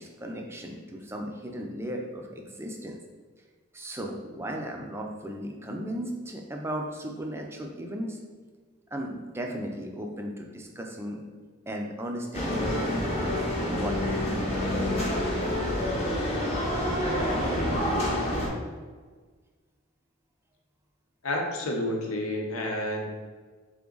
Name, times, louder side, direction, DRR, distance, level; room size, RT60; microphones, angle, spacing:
voice 1, 0.0-3.0 3.7-8.2 8.9-11.2 11.7-13.2 13.8-14.8, equal, 10° right, 1 dB, 0.4 m, -36 dB
sound 1, 12.3-18.5, left 1 dB, 30° left, 0.8 m, -27 dB
voice 2, 21.2-23.1, left 1 dB, 85° left, 1 dB, 0.8 m, -30 dB
3.8 x 3.6 x 3.8 m, 1.5 s
head